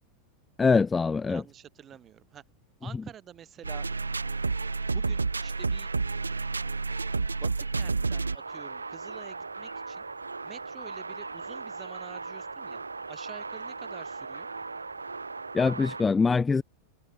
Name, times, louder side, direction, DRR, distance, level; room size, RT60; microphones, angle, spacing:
voice 1, 0.6-1.4 15.5-16.6, left 4 dB, 15° left, 0.4 m, -23 dB
voice 2, 1.3-2.4 2.8-3.9 4.9-5.9 7.2-10.0 10.4-14.5, right 10 dB, 25° right, 5.9 m, -48 dB
sound 1, 3.6-16.0, right 4 dB, 80° right, 1.6 m, -33 dB
sound 2, 7.6-14.4, equal, 90° left, 7.7 m, -61 dB
figure-of-eight pair, 90°, 0 cm